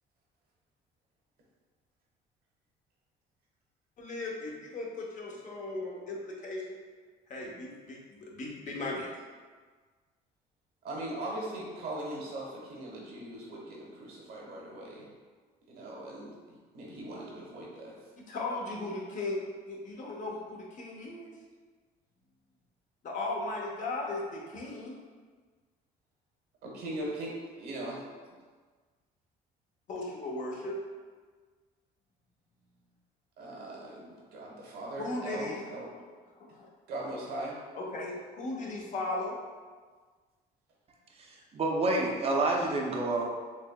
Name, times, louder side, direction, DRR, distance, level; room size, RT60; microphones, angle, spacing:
voice 1, 4.0-6.8 7.3-9.1 18.2-19.4 19.7-21.3 23.0-25.0 29.9-30.8 35.0-35.6 36.4-36.7 37.7-39.4, left 2 dB, 50° left, -2 dB, 0.8 m, -37 dB
voice 2, 10.8-15.1 15.7-17.9 26.6-28.0 33.4-35.9 36.9-37.6, right 1 dB, 70° right, -3 dB, 1.1 m, -40 dB
voice 3, 41.5-43.3, right 2 dB, 35° right, -1 dB, 0.5 m, -28 dB
4.3 x 2.9 x 2.2 m, 1.5 s
cardioid pair, 110°, 17 cm